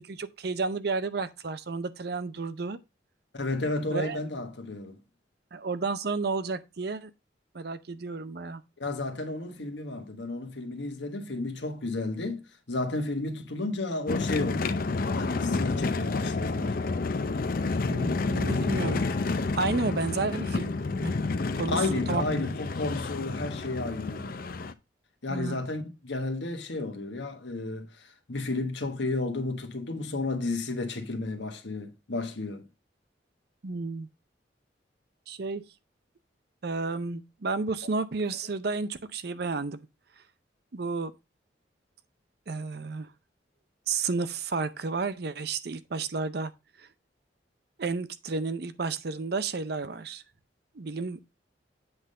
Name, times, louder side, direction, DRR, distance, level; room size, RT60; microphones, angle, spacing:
voice 1, 0.0-2.8 3.9-4.2 5.5-7.1 7.5-8.6 17.8-19.1 19.6-21.1 21.6-21.8 22.1-22.2 25.3-25.6 33.6-34.1 35.3-35.7 36.6-39.9 40.7-41.1 42.5-43.1 43.9-46.5 46.8-46.9 47.8-50.2 50.7-51.2, right 4 dB, 55° right, 0.6 m, -32 dB
voice 2, 3.3-5.0 8.8-12.4 12.7-14.7 15.1-16.8 21.7-24.4 25.2-32.7, left 2 dB, 75° left, 1.3 m, -32 dB
sound 1, 14.1-24.7, left 3 dB, 50° left, 0.5 m, -29 dB
8.0 x 3.7 x 5.3 m
head